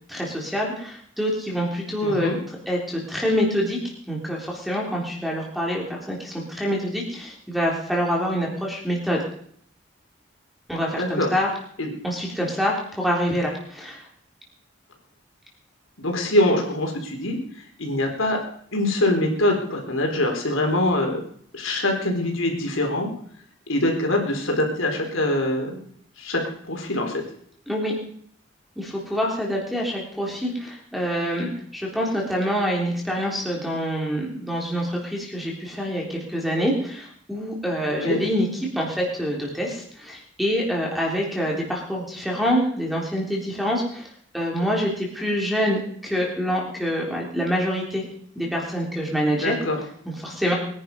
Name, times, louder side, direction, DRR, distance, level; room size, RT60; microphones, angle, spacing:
voice 1, 0.1-3.8 4.1-9.2 10.7-11.5 12.0-14.1 27.7-27.9 28.8-38.5 38.7-44.1 44.3-48.0 48.4-49.6 50.2-50.5, equal, ahead, -2 dB, 3.6 m, -26 dB
voice 2, 2.0-2.4 10.9-11.3 11.8-11.9 16.0-17.4 17.8-18.4 18.7-21.2 21.5-23.1 23.7-25.8 26.2-26.4 26.7-27.2 37.9-38.2 49.4-49.8, left 1 dB, 85° left, 2 dB, 4.0 m, -23 dB
22.0 x 10.5 x 5.4 m, 0.63 s
head